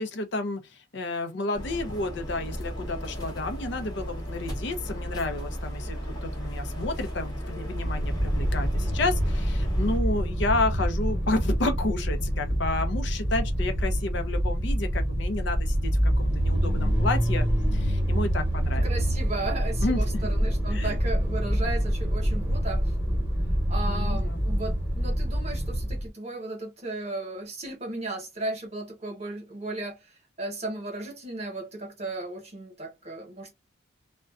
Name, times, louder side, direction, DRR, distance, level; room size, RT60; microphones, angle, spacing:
voice 1, 0.0-17.5 17.7-18.9 19.8-20.3 20.7-21.0 23.9-24.5, left 2 dB, 55° left, 0.5 m, -31 dB
sound 1, 1.5-10.0, equal, 20° left, 0.7 m, -35 dB
sound 2, 7.7-26.1, equal, 10° right, 1.0 m, -26 dB
voice 2, 18.7-22.9 23.7-33.5, right 2 dB, 30° right, 1.0 m, -35 dB
2.4 x 2.1 x 2.3 m
head